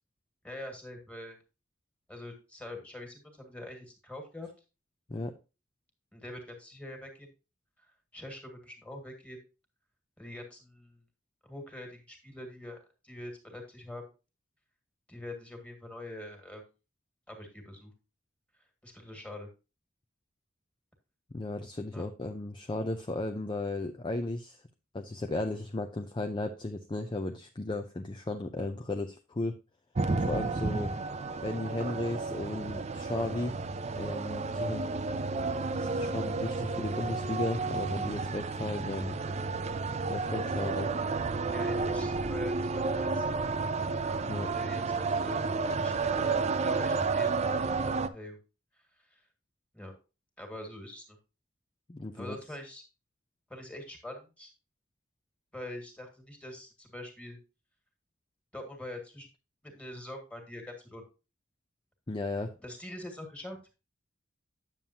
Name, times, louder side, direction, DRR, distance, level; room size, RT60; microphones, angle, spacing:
voice 1, 0.4-1.4 2.1-4.5 6.1-7.3 8.1-9.4 10.2-11.0 11.4-14.1 15.1-16.7 17.3-17.9 18.8-19.5 21.9-22.1 34.4-34.6 41.5-43.4 44.4-47.6 48.1-48.4 49.1-49.2 49.7-49.9 50.4-51.2 52.1-52.8 53.5-54.5 55.5-57.4 58.5-59.3 59.6-61.0 62.6-63.7, left 1 dB, 5° left, 3 dB, 1.9 m, -44 dB
voice 2, 21.3-24.6 24.9-29.6 30.2-30.9 31.4-33.5 34.0-34.9 35.8-39.2 40.1-40.9 44.3-44.5 51.9-52.4 62.1-62.5, left 2 dB, 25° left, 5 dB, 0.5 m, -35 dB
sound 1, 30.0-48.1, right 4 dB, 35° right, 0.4 m, -31 dB
9.1 x 7.1 x 2.8 m, 0.30 s
head